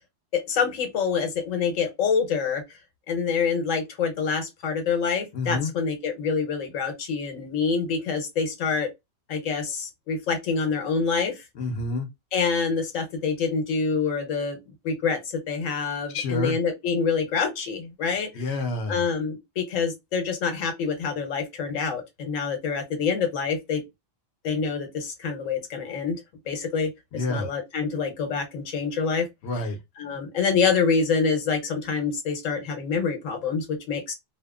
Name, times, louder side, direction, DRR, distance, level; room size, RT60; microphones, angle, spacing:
voice 1, 0.5-2.6 3.1-8.9 9.3-11.4 12.3-14.6 14.8-18.3 18.9-23.8 24.4-26.2 26.5-29.3 30.0-34.1, left 5 dB, 80° left, 1.2 m, -26 dB
voice 2, 5.3-5.7 11.5-12.1 16.1-16.6 18.3-19.0 27.1-27.5 29.4-29.8, left 2 dB, 65° left, 0.9 m, -28 dB
2.8 x 2.1 x 2.3 m
omnidirectional pair, 1.3 m